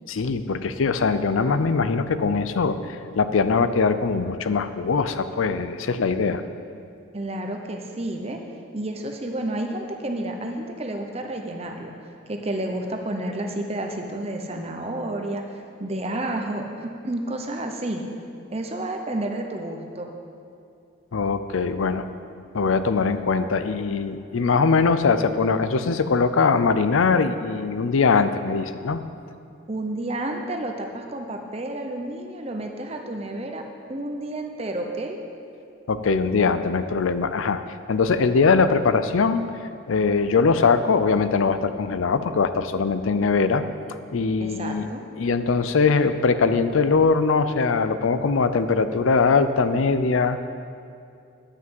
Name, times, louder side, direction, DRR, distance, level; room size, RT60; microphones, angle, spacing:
voice 1, 0.1-6.4 21.1-22.1 22.5-29.0 35.9-37.6 37.9-39.5 39.9-43.6 44.1-44.9 45.2-50.4, left 4 dB, 80° left, 11 dB, 0.5 m, -21 dB
voice 2, 7.1-8.4 8.7-18.0 18.5-20.1 29.7-33.6 33.9-35.2 44.4-45.0, right 1 dB, 30° right, 3 dB, 0.8 m, -30 dB
9.9 x 5.9 x 7.7 m, 2.5 s
head